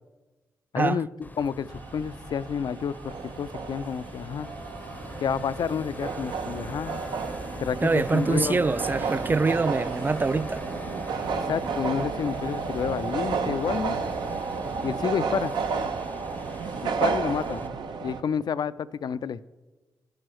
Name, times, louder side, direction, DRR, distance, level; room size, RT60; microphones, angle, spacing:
voice 1, 0.7-4.5 5.2-7.0 7.6-8.6 11.5-14.0 14.8-15.6 16.8-17.6 18.0-19.5, left 7 dB, 60° left, 0.4 m, -30 dB
sound 1, 1.2-17.7, left 2 dB, 20° left, 0.6 m, -42 dB
sound 2, 1.7-18.2, right 5 dB, 70° right, 0.7 m, -32 dB
voice 2, 7.8-10.7, right 3 dB, 25° right, 0.3 m, -24 dB
15.0 x 6.4 x 3.1 m
supercardioid pair, 40°, 8 cm